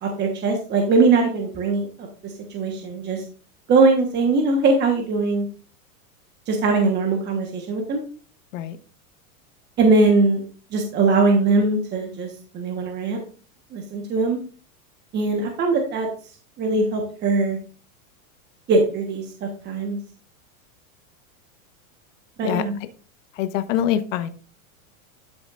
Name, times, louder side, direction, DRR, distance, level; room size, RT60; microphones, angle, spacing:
voice 1, 0.0-1.9 2.5-3.2 3.7-5.5 6.5-8.0 9.8-10.4 10.7-13.2 13.7-14.4 15.1-16.1 16.6-17.6 18.7-20.0 22.4-22.8, right 3 dB, 25° right, 2 dB, 1.3 m, -21 dB
voice 2, 22.4-22.9 23.3-24.3, left 10 dB, 60° left, 10 dB, 1.2 m, -25 dB
12.5 x 6.0 x 2.5 m, 0.38 s
supercardioid pair, 150°, 43 cm